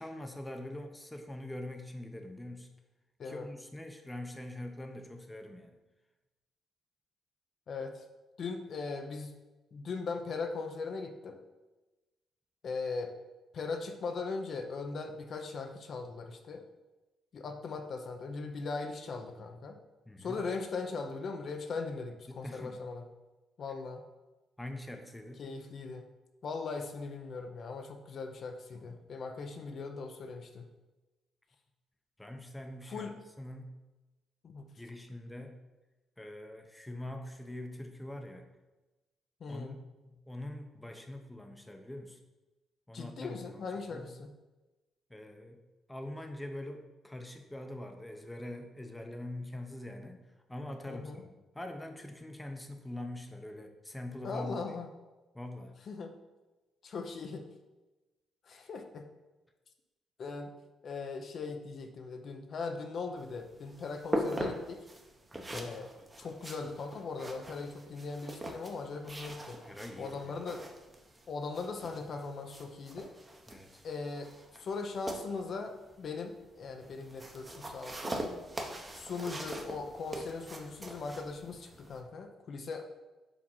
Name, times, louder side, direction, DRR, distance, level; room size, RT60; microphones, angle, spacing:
voice 1, 0.0-2.7 3.2-5.8 20.1-20.4 22.3-22.8 24.6-25.4 28.7-29.1 32.2-33.1 33.4-33.7 34.8-35.6 36.2-38.5 39.5-39.8 40.0-42.2 42.9-43.7 43.9-44.1 45.1-45.6 45.9-50.2 50.5-54.6 55.3-55.7 65.3-65.7 69.6-70.5 73.5-73.8, left 1 dB, 10° left, 4 dB, 0.7 m, -43 dB
voice 2, 7.7-8.0 8.4-9.3 9.7-11.4 12.6-13.1 13.5-16.6 17.3-19.8 20.2-23.1 23.6-24.0 25.4-26.0 26.4-30.7 32.9-33.2 34.4-34.7 39.4-39.8 42.9-44.3 50.9-51.2 54.2-54.9 55.8-56.1 56.8-57.5 58.4-59.1 60.2-60.5 60.8-64.9 65.5-65.9 66.2-69.6 70.0-70.6 71.3-73.1 73.8-74.3 74.6-78.2 79.0-82.8, left 4 dB, 55° left, 5 dB, 0.6 m, -39 dB
sound 1, 63.2-82.0, right 1 dB, 20° right, 0.9 m, -42 dB
5.0 x 3.6 x 5.5 m, 1.1 s
cardioid pair, 90°, 0 cm